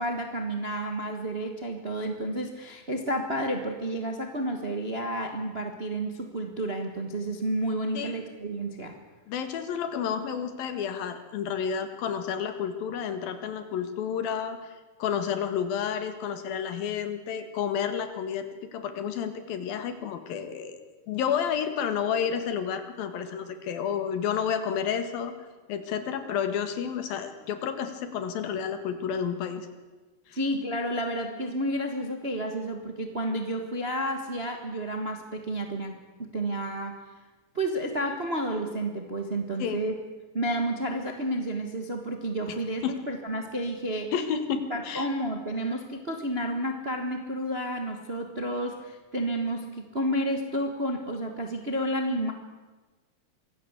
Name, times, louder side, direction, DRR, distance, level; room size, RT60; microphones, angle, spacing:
voice 1, 0.0-9.0 30.3-37.0 37.5-39.9 40.3-44.1 44.7-52.3, right 1 dB, 35° right, 5 dB, 0.9 m, -31 dB
voice 2, 9.3-20.8 21.1-25.3 25.7-29.7 30.3-30.4 39.6-39.8 42.8-43.0 44.1-45.1, left 7 dB, 85° left, 9 dB, 3.5 m, -30 dB
24.0 x 16.5 x 8.2 m, 1.3 s
omnidirectional pair, 4.0 m